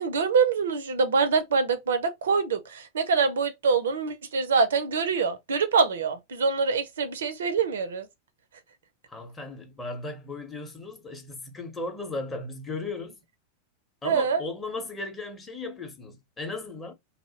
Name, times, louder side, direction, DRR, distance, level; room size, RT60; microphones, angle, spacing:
voice 1, 0.0-8.1 14.0-14.4, right 5 dB, 65° right, 0.4 m, -25 dB
voice 2, 9.1-13.2 14.0-16.9, left 2 dB, 15° left, 0.7 m, -36 dB
2.4 x 2.0 x 2.7 m
figure-of-eight pair, 90°, 0 cm